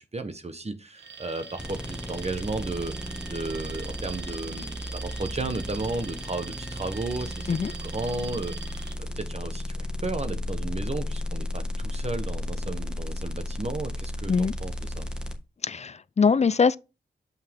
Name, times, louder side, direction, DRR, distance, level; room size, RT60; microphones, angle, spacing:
voice 1, 0.0-8.9 9.1-15.1, right 3 dB, 35° right, 1.1 m, -34 dB
Alarm, 0.9-9.0, right 5 dB, 80° right, 1.5 m, -43 dB
sound 1, 1.6-15.3, left 1 dB, 5° right, 1.6 m, -34 dB
voice 2, 15.6-16.8, left 5 dB, 40° left, 0.5 m, -22 dB
7.5 x 5.5 x 3.6 m
cardioid pair, 60°, 18 cm